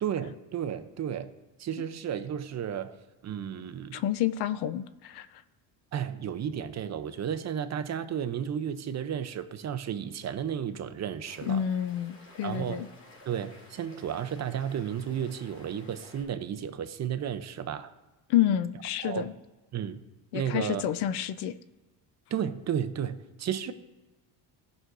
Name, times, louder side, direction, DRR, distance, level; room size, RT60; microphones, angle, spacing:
voice 1, 0.0-1.3 1.6-2.9 3.2-4.0 5.9-11.6 12.4-12.9 13.3-17.9 19.0-19.3 19.7-20.0 20.3-20.8 22.3-23.7, right 9 dB, 40° right, 10 dB, 0.7 m, -33 dB
voice 2, 3.9-5.3 11.5-12.9 18.3-19.3 20.3-21.6, left 11 dB, 65° left, 13 dB, 0.6 m, -29 dB
sound 1, 11.2-16.2, left 2 dB, 40° left, 2.9 m, -53 dB
18.0 x 6.2 x 2.6 m, 1.2 s
cardioid pair, 120°, 43 cm